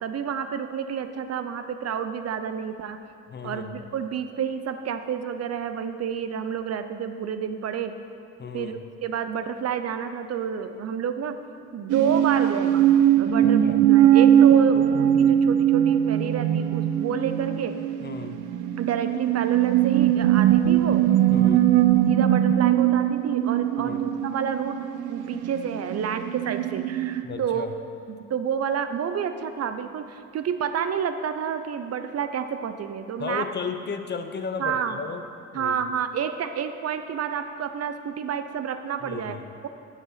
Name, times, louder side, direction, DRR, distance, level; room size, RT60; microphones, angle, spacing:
voice 1, 0.0-3.0 3.4-7.9 8.5-11.4 11.7-17.7 18.8-21.0 22.1-24.8 25.1-27.7 28.1-33.5 34.6-35.0 35.5-39.4 39.6-39.7, right 7 dB, 55° right, 9 dB, 0.7 m, -29 dB
voice 2, 3.3-3.8 8.4-8.8 13.4-13.8 18.0-18.4 21.3-21.7 23.8-24.0 27.2-27.7 33.2-35.2 35.5-35.8 39.0-39.5, left 5 dB, 35° left, 8 dB, 0.7 m, -34 dB
sound 1, 11.9-27.2, right 11 dB, 90° right, 0.5 m, -21 dB
11.5 x 6.1 x 5.7 m, 2.5 s
cardioid pair, 90°, 30 cm